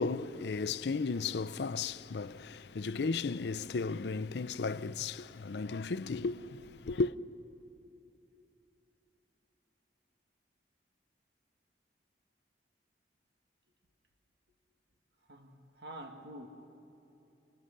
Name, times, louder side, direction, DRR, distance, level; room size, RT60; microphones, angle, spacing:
voice 1, 0.0-7.2, left 4 dB, 75° left, 0.5 m, -34 dB
voice 2, 15.3-16.5, right 1 dB, 65° right, 1.8 m, -47 dB
28.5 x 25.5 x 6.6 m
head